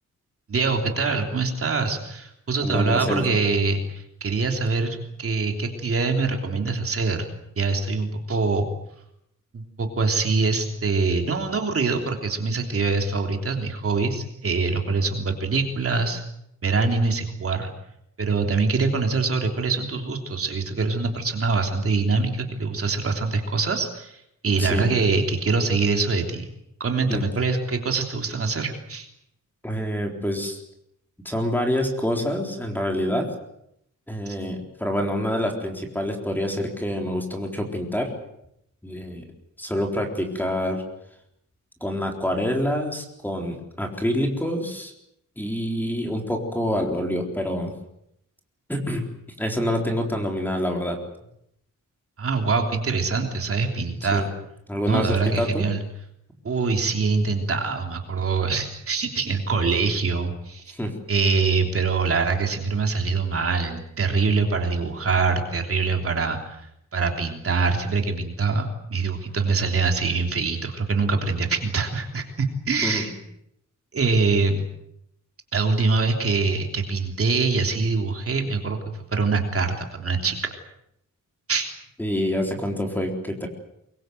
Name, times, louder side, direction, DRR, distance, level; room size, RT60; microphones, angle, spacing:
voice 1, 0.5-7.3 7.6-8.7 9.5-16.2 16.6-17.7 18.2-26.5 26.8-29.1 34.3-34.4 52.2-54.3 54.9-55.8 56.4-60.8 61.1-66.7 66.9-73.1 73.9-74.6 75.5-80.4 81.5-81.6, right 4 dB, 45° right, 3 dB, 3.3 m, -24 dB
voice 2, 2.6-3.3 24.6-24.9 27.1-27.2 29.6-30.6 31.2-33.3 34.1-38.1 38.8-39.2 39.6-40.8 41.8-44.9 45.4-47.7 48.7-49.0 49.4-51.0 54.1-54.3 54.7-55.7 60.7-60.9 72.8-73.0 82.0-83.5, equal, 5° left, 2 dB, 3.9 m, -26 dB
24.5 x 23.0 x 7.9 m, 0.78 s
wide cardioid pair, 175°, 31 cm